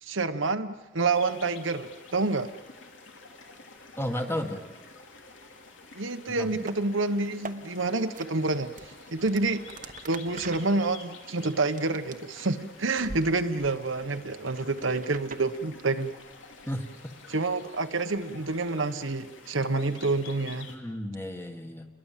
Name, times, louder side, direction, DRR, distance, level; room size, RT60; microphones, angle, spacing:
voice 1, 0.0-2.5 5.9-9.6 10.0-16.1 17.3-20.7, right 3 dB, 75° right, 8 dB, 1.2 m, -28 dB
sound 1, 1.1-20.8, left 3 dB, 70° left, 2.9 m, -49 dB
voice 2, 4.0-4.6 6.3-6.5 16.7-16.9 20.7-21.9, left 1 dB, 10° left, 5 dB, 1.7 m, -33 dB
sound 2, 6.5-6.8 7.2-7.6 8.1-8.3 8.7-12.6 13.0-13.2 13.6-15.4, right 4 dB, 40° right, 1.2 m, -44 dB
29.5 x 21.5 x 7.5 m, 1.2 s
head